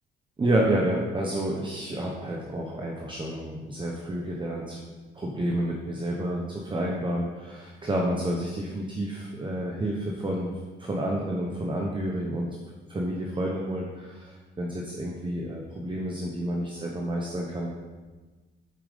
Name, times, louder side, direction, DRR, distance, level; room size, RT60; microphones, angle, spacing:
voice 1, 0.4-4.8 5.2-10.5 10.8-12.5 12.9-17.7, right 1 dB, 25° right, -1 dB, 1.0 m, -29 dB
7.6 x 4.8 x 5.2 m, 1.3 s
cardioid pair, 90°, 20 cm